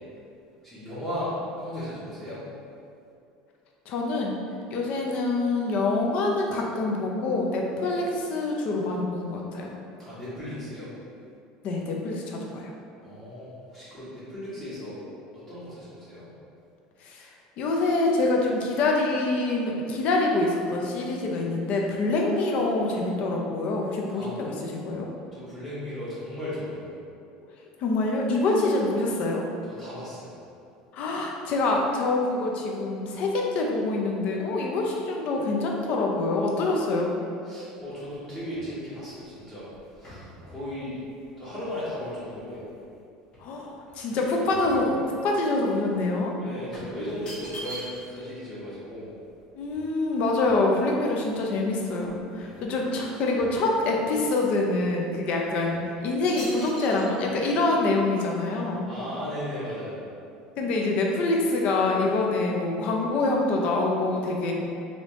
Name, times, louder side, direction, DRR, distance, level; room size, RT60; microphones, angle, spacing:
voice 1, 0.6-1.3 1.6-2.4 10.0-10.9 13.0-15.0 15.5-16.3 24.2-24.3 25.3-26.9 29.7-30.3 37.5-39.7 40.0-41.0 41.4-42.6 46.4-47.8 48.1-49.1 52.4-52.6 58.9-60.0, left 1 dB, 15° left, -12 dB, 1.1 m, -36 dB
voice 2, 3.9-4.4 4.7-9.7 11.6-12.7 17.0-25.1 27.8-29.4 30.9-37.1 43.4-45.0 45.2-46.3 49.6-58.8 60.6-64.5, left 2 dB, 55° left, 0 dB, 0.5 m, -26 dB
sound 1, 37.8-42.9 43.3-45.5 45.8-46.0 46.7-48.3 48.6-48.7 48.9-51.1 51.6-51.7 52.0-52.7 53.0-54.2 54.8-55.0 55.6-55.8 56.4-57.0, equal, 35° left, 1.1 m, -45 dB
3.2 x 2.7 x 3.1 m, 2.5 s
supercardioid pair, 120°, 3 cm